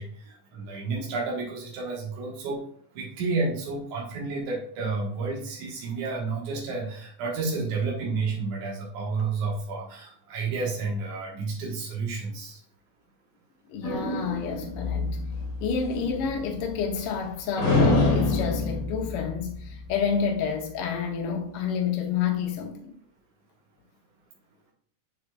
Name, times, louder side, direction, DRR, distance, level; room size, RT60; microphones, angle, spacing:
voice 1, 0.0-2.6 3.0-12.6, right 4 dB, 90° right, 2.7 m, -31 dB
voice 2, 13.7-15.2 15.6-22.9, left 6 dB, 70° left, 1.5 m, -29 dB
sound 1, 13.8-17.3 17.6-20.3, left 2 dB, 45° left, 1.7 m, -27 dB
7.0 x 7.0 x 2.3 m
omnidirectional pair, 3.4 m